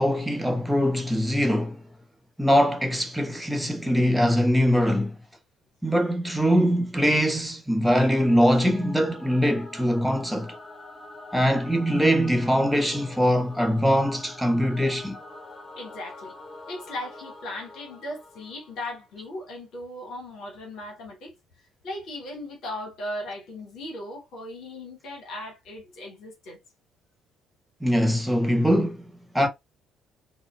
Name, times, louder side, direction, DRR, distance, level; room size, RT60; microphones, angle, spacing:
voice 1, 0.0-1.8 2.4-5.2 5.8-10.6 11.3-15.2 27.8-29.0 29.3-29.5, equal, 5° right, 0.9 m, -22 dB
Singing / Musical instrument, 7.9-19.2, left 2 dB, 35° left, 1.3 m, -45 dB
voice 2, 15.7-16.3 16.7-21.3 21.8-26.6, left 1 dB, 65° left, 1.0 m, -37 dB
3.6 x 2.1 x 2.2 m
hypercardioid pair, 50°, 0 cm